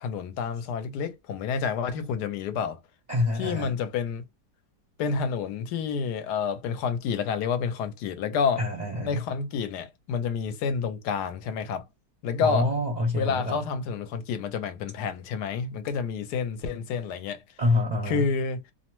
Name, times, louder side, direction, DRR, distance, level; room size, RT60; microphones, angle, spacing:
voice 1, 0.0-2.8 3.3-4.2 5.0-8.6 9.0-11.8 12.2-12.7 13.1-17.4 18.0-18.6, left 6 dB, 75° left, 1.1 m, -29 dB
voice 2, 3.1-3.7 8.6-9.2 12.4-13.6 17.6-18.2, left 2 dB, 45° right, 0.6 m, -26 dB
2.8 x 2.1 x 2.8 m
omnidirectional pair, 1.8 m